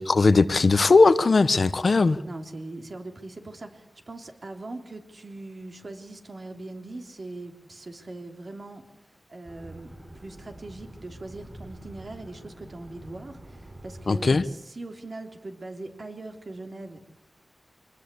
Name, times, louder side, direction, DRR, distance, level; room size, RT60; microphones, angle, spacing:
voice 1, 0.0-2.2 14.1-14.4, left 3 dB, 55° left, 13 dB, 1.0 m, -19 dB
voice 2, 2.3-8.8 9.3-17.1, right 2 dB, 50° right, 5 dB, 3.3 m, -41 dB
sound 1, 9.4-14.4, right 1 dB, 20° right, 7.9 m, -45 dB
25.0 x 20.5 x 8.4 m, 0.85 s
wide cardioid pair, 100°, 0 cm